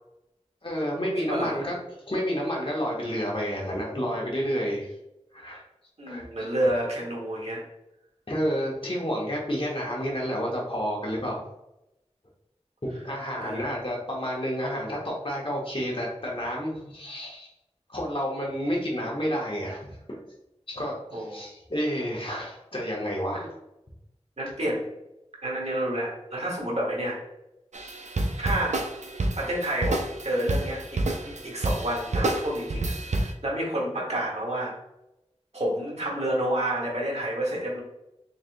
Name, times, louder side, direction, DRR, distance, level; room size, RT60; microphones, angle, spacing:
voice 1, 0.6-1.7 2.1-4.9 5.3-5.6 6.1-6.5 8.3-11.4 12.8-17.5 17.9-20.2 20.7-23.5 27.8-28.0, equal, 45° left, -3 dB, 1.1 m, -30 dB
voice 2, 1.3-1.6 6.0-7.6 13.4-13.7 21.1-21.5 24.4-24.9 25.4-27.2 28.4-28.8 29.4-34.7 35.5-37.8, right 1 dB, 65° right, -3 dB, 1.2 m, -29 dB
sound 1, 27.7-33.3, right 2 dB, 80° right, 0.4 m, -29 dB
3.9 x 3.4 x 2.5 m, 0.88 s
wide cardioid pair, 45°, 12 cm